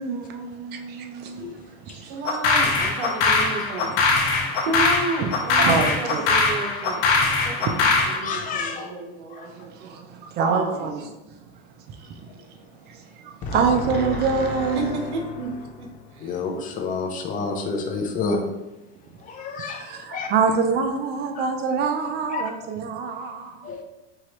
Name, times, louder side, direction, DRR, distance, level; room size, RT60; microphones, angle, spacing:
voice 1, 0.0-1.5 1.9-2.0 4.5-4.6 5.5-6.3 7.6-8.3 9.5-11.1 11.9-12.3 12.9-15.0 19.4-19.5 19.8-23.7, right 5 dB, 30° right, 0.4 m, -26 dB
voice 2, 2.0-3.9 4.7-9.9 10.4-11.1 14.7-15.9 16.1-16.4, right 2 dB, 80° right, 1.0 m, -32 dB
sound 1, 2.3-8.2, left 4 dB, 55° left, 0.9 m, -21 dB
voice 3, 8.2-9.0 9.3-9.5 12.3-12.4 13.4-15.3 16.2-18.4 19.2-20.3 21.3-21.5 22.3-22.5 23.6-23.8, left 4 dB, 25° left, 0.6 m, -30 dB
4.7 x 2.9 x 2.9 m
supercardioid pair, 135°, 35 cm